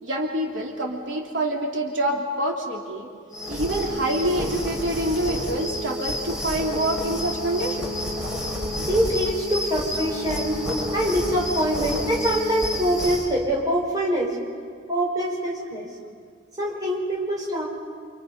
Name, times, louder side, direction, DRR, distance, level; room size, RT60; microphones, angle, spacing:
voice 1, 0.0-3.1 3.5-8.1 9.8-9.9, right 1 dB, 85° right, 0 dB, 3.1 m, -26 dB
sound 1, 3.3-13.3, left 1 dB, 5° right, 5.4 m, -30 dB
voice 2, 8.9-10.6 10.9-14.4 14.9-15.9 16.6-17.6, equal, 20° right, -3 dB, 5.1 m, -24 dB
29.5 x 27.0 x 5.4 m, 2.1 s
head